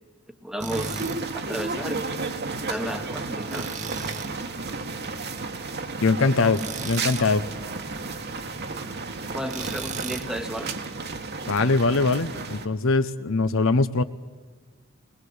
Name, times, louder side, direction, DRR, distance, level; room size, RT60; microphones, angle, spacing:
voice 1, 0.4-1.0 1.3-2.1 2.4-3.7 9.3-10.7, equal, ahead, 8 dB, 1.2 m, -33 dB
Tools, 0.6-1.2 3.5-4.4 6.5-7.3 9.5-10.3, right 5 dB, 35° right, 1.3 m, -35 dB
sound 1, 0.7-12.7, right 3 dB, 50° right, 1.6 m, -33 dB
voice 2, 6.0-7.4 11.5-14.0, left 3 dB, 65° left, 12 dB, 0.8 m, -22 dB
21.5 x 20.0 x 8.0 m, 1.5 s
head